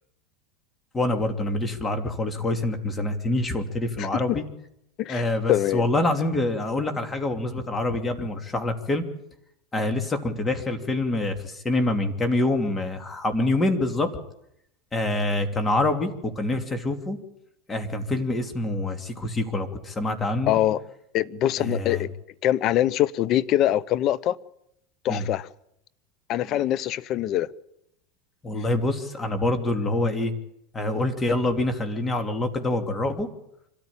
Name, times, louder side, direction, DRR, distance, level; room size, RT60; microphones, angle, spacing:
voice 1, 0.9-4.4 5.1-9.0 9.7-14.1 14.9-17.2 17.7-20.6 21.6-22.1 25.1-25.3 26.4-26.7 28.4-30.3 30.7-33.3, left 2 dB, 20° left, 2.9 m, -26 dB
voice 2, 5.0-5.9 20.5-20.8 21.1-22.1 22.4-24.4 25.0-25.5 26.3-27.5 28.7-28.8, left 12 dB, 45° left, 0.8 m, -23 dB
25.5 x 13.5 x 8.8 m
supercardioid pair, 115°, 0 cm